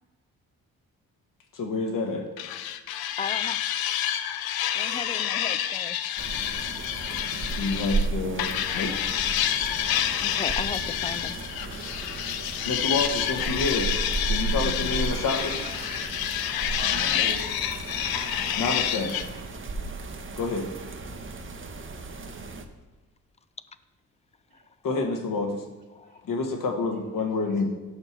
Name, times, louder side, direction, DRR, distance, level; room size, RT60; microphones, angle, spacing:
voice 1, 1.5-2.3 7.5-9.1 12.6-13.9 14.3-15.6 18.6-19.1 20.4-20.7 24.8-25.6 26.2-27.7, left 3 dB, 65° left, 3 dB, 1.5 m, -28 dB
sound 1, 2.4-8.1 8.4-19.3, left 11 dB, 85° left, 0.6 m, -28 dB
voice 2, 3.2-3.6 4.7-6.0 10.2-11.4 14.6-14.9 16.9-17.1 18.4-18.7 26.0-26.2, left 5 dB, 20° left, 14 dB, 0.4 m, -36 dB
sound 2, 6.2-22.6, right 3 dB, 35° right, 0.9 m, -34 dB
Sliding door, 14.6-16.6 17.5-19.7, right 6 dB, 90° right, 0.9 m, -45 dB
voice 3, 16.4-17.7 24.5-24.7 26.0-26.2 26.9-27.7, right 4 dB, 75° right, -5 dB, 1.4 m, -41 dB
6.6 x 5.8 x 4.6 m, 1.2 s
supercardioid pair, 60°, 36 cm